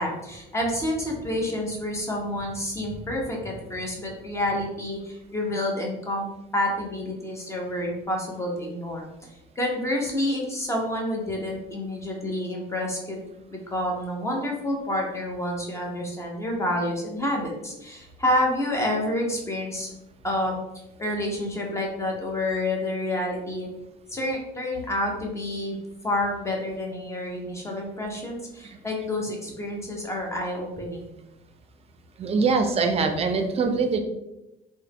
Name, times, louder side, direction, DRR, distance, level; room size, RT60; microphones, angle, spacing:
voice 1, 0.0-6.3 6.5-9.1 9.6-19.9 20.2-20.6 21.0-23.7 24.1-25.8 26.0-31.1, left 1 dB, 15° left, -1 dB, 0.9 m, -28 dB
voice 2, 32.2-34.0, right 4 dB, 35° right, 6 dB, 0.5 m, -23 dB
3.5 x 2.1 x 3.4 m, 0.95 s
cardioid pair, 110°, 17 cm